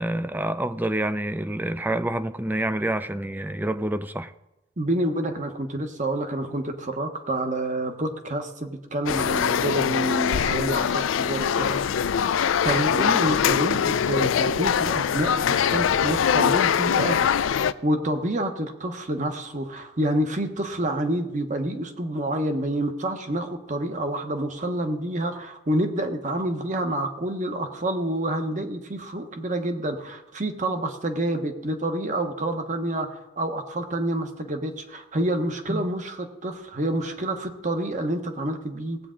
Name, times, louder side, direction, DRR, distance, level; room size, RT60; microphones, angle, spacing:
voice 1, 0.0-4.3 35.7-35.9, right 1 dB, 10° right, 0.4 m, -27 dB
voice 2, 4.8-11.8 12.6-17.3 17.8-39.0, right 1 dB, 40° right, 1.0 m, -28 dB
sound 1, 9.1-17.7, left 8 dB, 75° left, 0.4 m, -23 dB
18.5 x 8.4 x 3.8 m
head